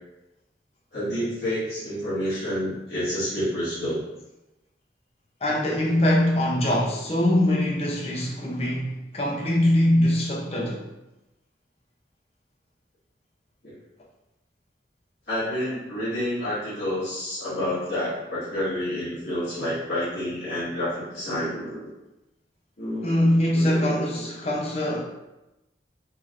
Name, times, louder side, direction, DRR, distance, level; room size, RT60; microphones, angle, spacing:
voice 1, 0.9-4.0 13.6-13.7 15.3-21.9 22.8-23.2 23.5-24.5, equal, 60° left, 1.4 m, -29 dB
voice 2, 5.4-10.9 23.0-25.0, left 1 dB, 35° left, 0.5 m, -23 dB
3.2 x 2.8 x 2.4 m
head